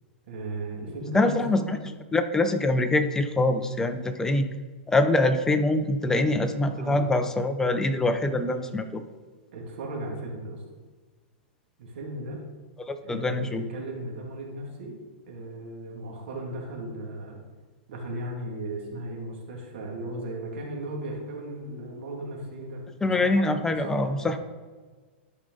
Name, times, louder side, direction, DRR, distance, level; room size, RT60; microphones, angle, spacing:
voice 1, 0.3-1.7 6.7-7.0 9.5-10.6 11.8-12.4 13.0-15.0 15.3-17.4 17.9-24.4, right 1 dB, 70° right, -1 dB, 2.3 m, -36 dB
voice 2, 1.1-1.8 2.1-4.4 4.9-9.0 12.9-13.6 23.0-24.4, left 2 dB, 10° left, 8 dB, 0.6 m, -24 dB
12.0 x 4.9 x 3.9 m, 1.4 s
hypercardioid pair, 140°, 6 cm